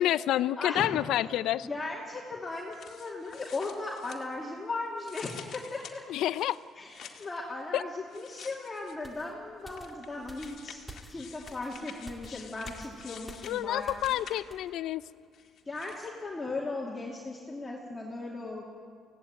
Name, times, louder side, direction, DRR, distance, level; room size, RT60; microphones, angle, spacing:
voice 1, 0.0-1.7 6.1-6.6 7.7-7.8 13.4-15.0, left 13 dB, 80° left, 16 dB, 0.6 m, -28 dB
voice 2, 0.6-1.0 1.6-6.0 6.8-14.2 15.7-18.6, left 3 dB, 20° left, -3 dB, 2.6 m, -37 dB
sound 1, 2.5-4.6 5.0-7.4 8.1-9.1 9.7-14.7 15.3-16.1, left 8 dB, 55° left, 2.0 m, -49 dB
sound 2, 9.0-14.2 14.5-14.7, right 1 dB, 5° right, 2.2 m, -50 dB
24.0 x 17.0 x 9.2 m, 2.2 s
cardioid pair, 140°, 0 cm